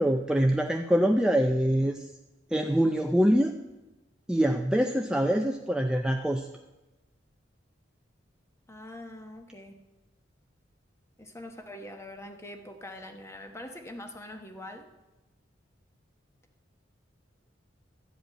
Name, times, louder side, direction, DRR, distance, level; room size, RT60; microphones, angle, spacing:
voice 1, 0.0-2.0 2.5-3.5 4.3-6.5, equal, 5° right, 3 dB, 0.5 m, -24 dB
voice 2, 8.7-9.8 11.2-14.9, left 1 dB, 15° left, 5 dB, 1.1 m, -43 dB
13.0 x 5.2 x 9.0 m, 1.1 s
head